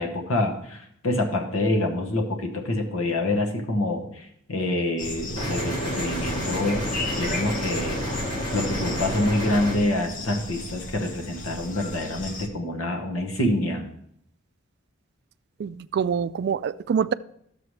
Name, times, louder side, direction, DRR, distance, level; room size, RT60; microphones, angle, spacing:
voice 1, 0.0-6.9 7.2-8.0 8.5-13.9, left 1 dB, 80° left, 2 dB, 1.2 m, -26 dB
sound 1, 5.0-12.5, left 2 dB, 40° left, 0.9 m, -36 dB
sound 2, 5.4-9.8, equal, 25° left, 2.6 m, -30 dB
voice 2, 15.6-17.1, right 7 dB, 55° right, 16 dB, 0.3 m, -25 dB
12.5 x 6.9 x 3.2 m, 0.71 s
head